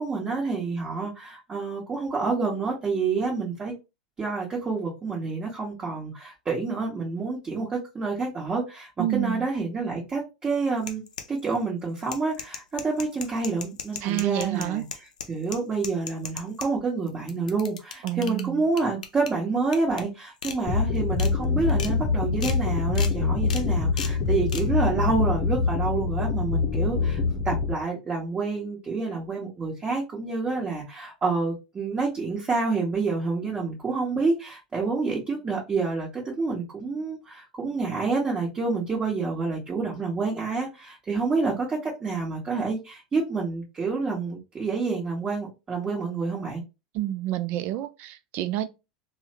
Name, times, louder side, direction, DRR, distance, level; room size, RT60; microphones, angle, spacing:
voice 1, 0.0-3.7 4.2-11.0 11.3-27.2 27.4-46.6, right 4 dB, 25° right, 1.1 m, -28 dB
voice 2, 9.0-9.5 14.0-14.8 18.0-18.6 46.9-48.7, right 13 dB, 50° right, 0.4 m, -28 dB
sound 1, 10.8-11.6 12.0-16.7 17.1-18.4 18.8-19.3 19.7-20.0 20.4-20.6 21.0-21.3 21.7-21.9 22.4-22.6 22.9-23.1 23.5-23.6 24.0-24.1 24.5-24.6, left 6 dB, 85° left, 0.5 m, -35 dB
sound 2, 20.7-27.7, left 4 dB, 40° left, 0.7 m, -25 dB
3.4 x 2.2 x 2.9 m
hypercardioid pair, 90°, 4 cm